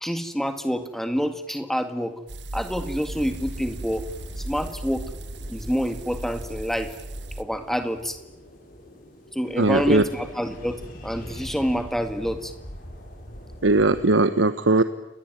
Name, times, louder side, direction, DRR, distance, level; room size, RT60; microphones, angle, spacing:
voice 1, 0.0-2.1 2.5-4.0 4.4-5.1 5.5-6.9 7.4-8.2 9.3-12.5, equal, ahead, 8 dB, 2.0 m, -27 dB
sound 1, 2.3-7.4, right 2 dB, 70° right, 1.2 m, -37 dB
sound 2, 2.5-14.0, equal, 45° left, 6.2 m, -42 dB
voice 2, 9.6-10.0 13.6-14.8, right 2 dB, 90° right, 11 dB, 1.1 m, -19 dB
29.5 x 20.5 x 9.1 m, 0.90 s
head